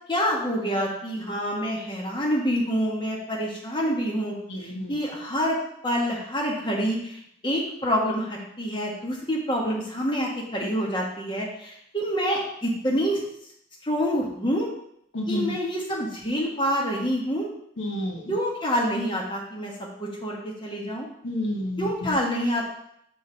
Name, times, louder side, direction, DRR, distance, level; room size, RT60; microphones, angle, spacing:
voice 1, 0.1-4.3 4.6-5.6 5.8-13.2 13.8-14.7 15.3-17.5 18.3-21.1 21.8-22.6, equal, 25° left, -3 dB, 1.4 m, -27 dB
voice 2, 4.5-4.9 15.1-15.5 17.8-18.3 21.2-21.9, left 1 dB, 75° left, 0 dB, 1.1 m, -29 dB
6.1 x 5.5 x 4.0 m, 0.73 s
head